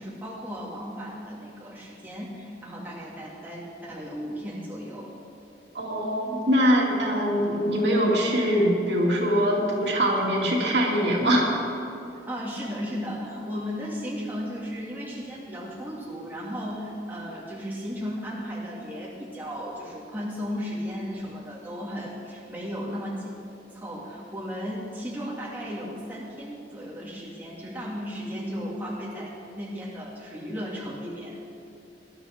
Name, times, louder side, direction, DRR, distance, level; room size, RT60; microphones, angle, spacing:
voice 1, 0.0-5.1 12.3-23.3 23.7-31.6, equal, 10° right, -6 dB, 2.1 m, -35 dB
voice 2, 5.7-11.6, equal, 75° right, -3 dB, 2.6 m, -23 dB
19.0 x 12.0 x 3.5 m, 2.7 s
head